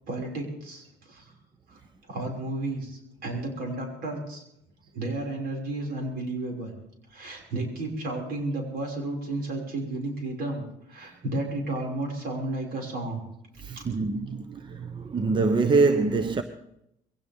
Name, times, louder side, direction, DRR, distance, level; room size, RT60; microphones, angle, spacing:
voice 1, 0.1-1.3 1.7-1.8 2.1-4.4 4.9-6.7 7.1-10.6 10.9-13.2 13.7-13.8, right 2 dB, 65° right, 5.9 m, -32 dB
voice 2, 13.6-16.4, right 4 dB, 30° right, 0.9 m, -24 dB
22.0 x 16.5 x 3.6 m
cardioid pair, 110°, 17 cm